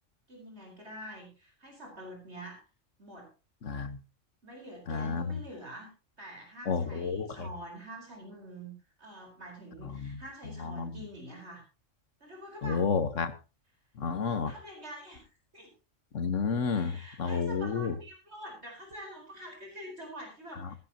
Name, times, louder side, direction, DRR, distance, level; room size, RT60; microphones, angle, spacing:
voice 1, 0.3-2.6 3.0-3.3 4.4-5.9 6.2-8.7 9.0-11.6 12.2-12.8 14.3-15.3 15.5-15.7 16.7-20.8, right 1 dB, 55° right, 4.8 m, -46 dB
voice 2, 3.6-4.0 4.9-5.4 6.7-7.3 10.0-10.1 10.8-10.9 12.6-13.3 14.0-14.5 16.1-17.9, left 5 dB, 75° left, 1.6 m, -30 dB
15.5 x 14.5 x 2.9 m
omnidirectional pair, 1.3 m